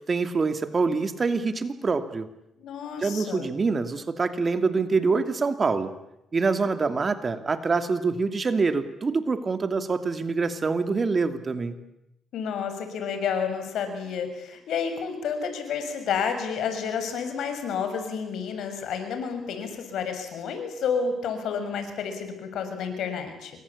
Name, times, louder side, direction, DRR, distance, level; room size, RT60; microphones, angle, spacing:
voice 1, 0.1-2.3 3.0-5.9 6.3-11.8, right 4 dB, 35° right, 9 dB, 2.7 m, -25 dB
voice 2, 2.6-3.5 12.3-23.5, left 6 dB, 75° left, 7 dB, 6.6 m, -30 dB
28.5 x 24.0 x 8.7 m, 0.85 s
cardioid pair, 90°, 0 cm